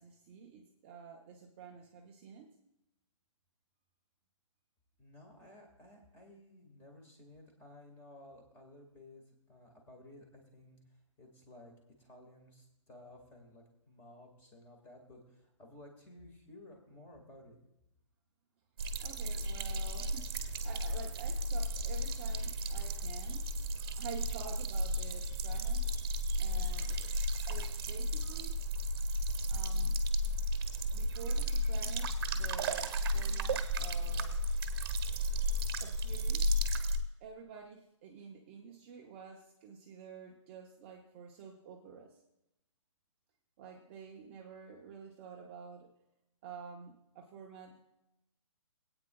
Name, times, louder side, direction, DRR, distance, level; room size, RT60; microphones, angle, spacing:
voice 1, 0.0-2.5 19.0-23.4 24.0-25.9 26.4-27.1 27.5-28.6 29.5-30.0 30.9-34.4 35.8-36.5 37.2-42.2 43.6-45.9 46.4-47.8, right 6 dB, 20° right, 0 dB, 0.7 m, -49 dB
voice 2, 5.0-10.8 11.2-11.7 12.0-17.6, left 1 dB, 15° left, 2 dB, 1.8 m, -56 dB
sound 1, 18.8-37.0, equal, 45° right, 1.0 m, -33 dB
25.0 x 8.8 x 2.3 m, 0.88 s
hypercardioid pair, 165°, 16 cm